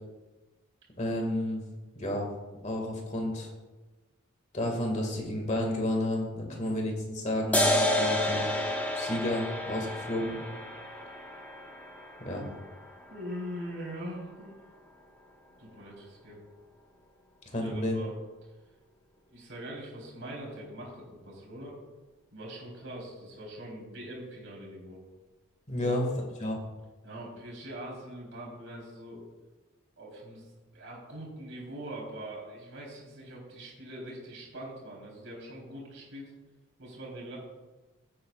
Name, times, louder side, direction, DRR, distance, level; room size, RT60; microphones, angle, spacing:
voice 1, 1.0-1.6 2.0-2.3 2.6-3.5 4.5-8.5 8.9-10.4 12.2-12.5 17.5-18.0 25.7-26.0 26.4-26.6, left 1 dB, 35° left, 1 dB, 2.0 m, -31 dB
sound 1, 7.5-14.5, left 1 dB, 5° left, 1.1 m, -31 dB
voice 2, 13.1-14.6 15.6-16.4 17.5-18.1 19.3-21.8 22.3-25.0 25.8-26.0 27.0-29.3 30.0-36.3 36.8-37.4, right 1 dB, 60° right, -3 dB, 3.7 m, -42 dB
16.0 x 8.6 x 2.4 m, 1.2 s
head